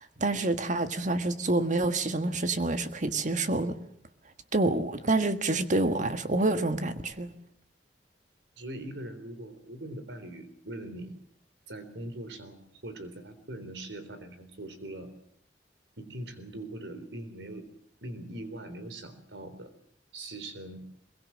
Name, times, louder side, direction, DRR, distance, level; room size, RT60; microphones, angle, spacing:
voice 1, 0.0-3.7 4.5-7.3, right 2 dB, 45° right, 1.6 m, -27 dB
voice 2, 8.6-11.2 11.7-15.1 16.0-17.7 18.0-19.7 20.1-20.8, right 1 dB, 90° right, 3.8 m, -41 dB
22.5 x 22.5 x 7.5 m
head